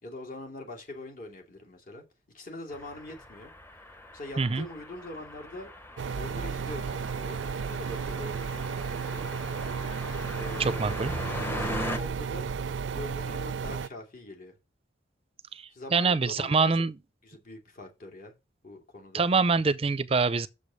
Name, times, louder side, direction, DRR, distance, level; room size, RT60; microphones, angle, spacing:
voice 1, 0.0-2.0 2.3-3.5 4.1-5.7 6.2-7.4 7.7-9.3 10.3-11.0 11.4-12.5 12.9-14.5 15.7-16.8 17.2-18.3 18.6-19.3, left 2 dB, 50° left, 2.6 m, -43 dB
sound 1, 2.7-12.0, left 1 dB, 10° left, 0.9 m, -40 dB
sound 2, 6.0-13.9, right 6 dB, 90° right, 0.4 m, -33 dB
voice 2, 10.6-11.1 15.9-16.9 19.1-20.5, right 4 dB, 30° right, 0.5 m, -24 dB
6.9 x 5.1 x 6.9 m
head